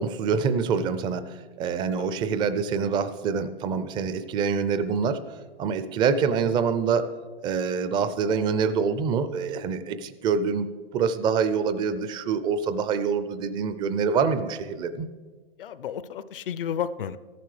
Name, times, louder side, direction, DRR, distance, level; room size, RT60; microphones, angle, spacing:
voice 1, 0.0-5.2 5.6-7.1 7.4-15.1, right 6 dB, 15° right, 13 dB, 0.4 m, -26 dB
voice 2, 15.6-17.2, left 8 dB, 65° left, 15 dB, 0.6 m, -32 dB
13.5 x 10.5 x 3.2 m, 1.5 s
hypercardioid pair, 115°, 29 cm